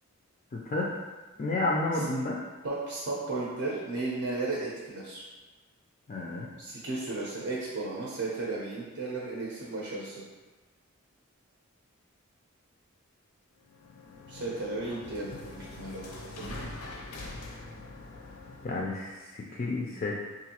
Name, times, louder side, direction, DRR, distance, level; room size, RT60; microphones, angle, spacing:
voice 1, 0.5-0.9 1.4-2.4 6.1-6.5 18.6-20.2, left 2 dB, 35° left, -2 dB, 0.3 m, -31 dB
voice 2, 2.6-5.2 6.6-10.2 14.3-16.7, right 2 dB, 60° right, -5 dB, 0.6 m, -35 dB
sound 1, 13.6-19.1, left 2 dB, 90° left, 0.5 m, -44 dB
3.9 x 2.5 x 2.8 m, 1.3 s
head